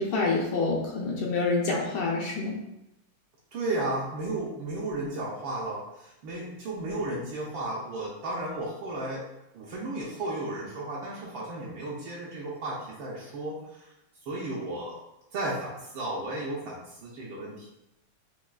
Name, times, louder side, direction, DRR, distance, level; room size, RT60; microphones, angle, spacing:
voice 1, 0.0-2.5, left 3 dB, 75° left, -3 dB, 1.4 m, -27 dB
voice 2, 3.5-9.2 9.5-13.8 14.3-15.0 15.3-17.7, right 2 dB, 75° right, -5 dB, 1.3 m, -34 dB
5.7 x 2.3 x 2.3 m, 0.87 s
omnidirectional pair, 2.4 m